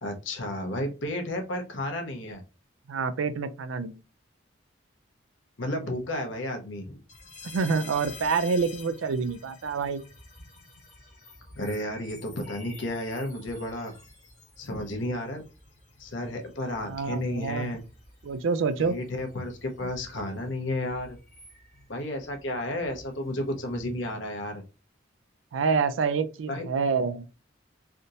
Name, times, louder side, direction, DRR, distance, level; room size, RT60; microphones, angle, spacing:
voice 1, 0.0-2.4 5.6-7.0 11.6-13.9 14.6-15.4 16.0-17.8 18.8-21.2 21.9-24.6 26.5-26.6, left 1 dB, 75° left, 0.9 m, -32 dB
voice 2, 2.9-4.0 7.5-10.0 16.9-17.7 18.2-19.0 25.5-27.2, right 5 dB, 85° right, 0.4 m, -27 dB
sound 1, 7.1-24.1, left 3 dB, 40° left, 1.0 m, -49 dB
3.5 x 2.7 x 2.5 m
head